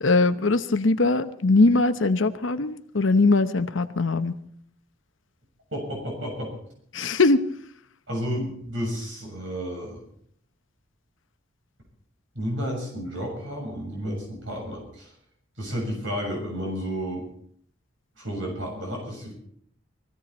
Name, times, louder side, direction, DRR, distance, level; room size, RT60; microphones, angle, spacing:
voice 1, 0.0-4.3 6.9-7.4, left 3 dB, 70° left, 10 dB, 0.9 m, -21 dB
voice 2, 5.7-6.5 8.1-10.0 12.4-15.1 15.6-17.2 18.2-19.3, equal, 70° right, 0 dB, 6.9 m, -31 dB
20.0 x 15.5 x 4.2 m, 0.64 s
head